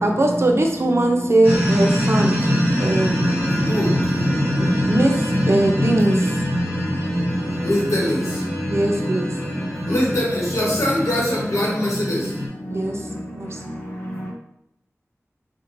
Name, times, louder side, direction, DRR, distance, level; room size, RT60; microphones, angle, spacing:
voice 1, 0.0-2.5 2.8-3.3 4.5-6.4 8.7-9.3 12.7-13.0 13.3-13.6, right 1 dB, 55° right, 2 dB, 0.4 m, -21 dB
sound 1, 1.4-12.5, equal, 20° right, 1.2 m, -23 dB
voice 2, 7.6-8.0 9.9-10.2 10.5-11.2 11.5-12.2, left 1 dB, 80° left, -5 dB, 0.9 m, -21 dB
voice 3, 13.1-14.3, equal, 40° left, -4 dB, 0.9 m, -50 dB
2.9 x 2.1 x 2.5 m, 0.77 s
wide cardioid pair, 55°, 5 cm